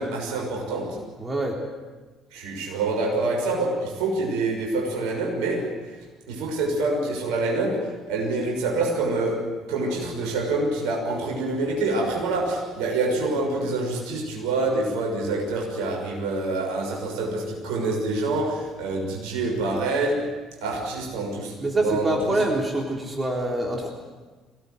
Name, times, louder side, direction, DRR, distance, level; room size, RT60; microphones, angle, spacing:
voice 1, 0.0-1.0 2.3-6.0 6.3-20.3 20.6-22.4, right 2 dB, 65° right, 0 dB, 6.5 m, -26 dB
voice 2, 1.2-1.6 21.6-23.9, right 1 dB, 25° right, 0 dB, 3.5 m, -25 dB
24.0 x 18.0 x 8.0 m, 1.3 s
figure-of-eight pair, 50°, 0 cm